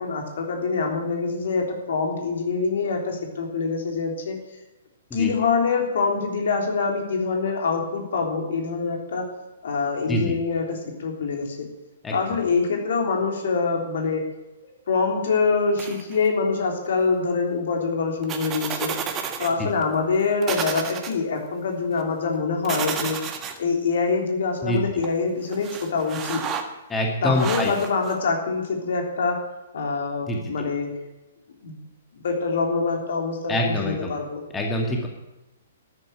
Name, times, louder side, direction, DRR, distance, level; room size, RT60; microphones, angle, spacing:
voice 1, 0.0-4.4 5.1-9.2 9.6-11.7 12.1-14.2 14.9-18.9 19.4-23.2 23.6-26.4 27.2-29.4 29.7-31.0 31.6-31.8 32.1-34.4, left 4 dB, 55° left, 2 dB, 3.5 m, -25 dB
sound 1, 15.8-16.3 18.2-19.5 19.8-19.9 20.4-21.1 22.6-23.6 25.0-25.1 25.5-26.6 27.3-28.1, right 7 dB, 20° right, 1.6 m, -30 dB
voice 2, 26.9-27.7 30.3-30.4 33.5-34.1 34.5-35.1, left 1 dB, 10° left, 0 dB, 2.1 m, -25 dB
13.5 x 9.5 x 8.8 m, 1.0 s
figure-of-eight pair, 115°, 0 cm